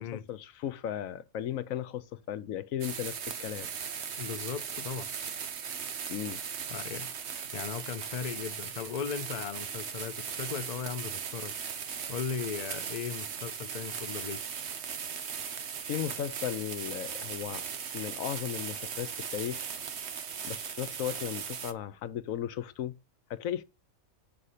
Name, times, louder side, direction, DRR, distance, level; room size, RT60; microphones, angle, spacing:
voice 1, 0.0-3.7 6.1-6.4 15.9-17.6 17.9-19.6 20.4-22.9 23.3-23.6, left 10 dB, 85° left, 1.1 m, -36 dB
sound 1, 2.8-21.7, right 7 dB, 60° right, 1.1 m, -38 dB
voice 2, 4.2-5.1 6.7-7.1 7.5-11.6 12.1-14.5, left 7 dB, 45° left, 0.5 m, -37 dB
7.6 x 5.6 x 6.5 m
omnidirectional pair, 1.4 m